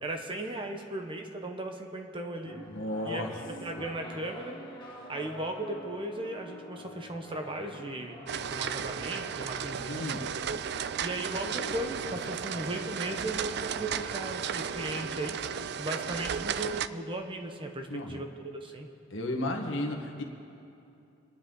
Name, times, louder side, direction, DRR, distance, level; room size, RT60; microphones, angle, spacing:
voice 1, 0.0-2.7 3.0-3.3 3.6-4.6 5.1-10.1 11.0-18.9, right 1 dB, 25° right, 4 dB, 1.0 m, -37 dB
sound 1, 2.4-16.2, left 1 dB, 25° left, 2.0 m, -47 dB
voice 2, 2.7-3.3 9.8-10.3 17.9-18.2 19.1-20.2, left 1 dB, 75° left, 2 dB, 1.6 m, -33 dB
sound 2, 8.3-16.9, right 7 dB, 55° right, 0.4 m, -34 dB
25.0 x 10.0 x 3.9 m, 2.7 s
head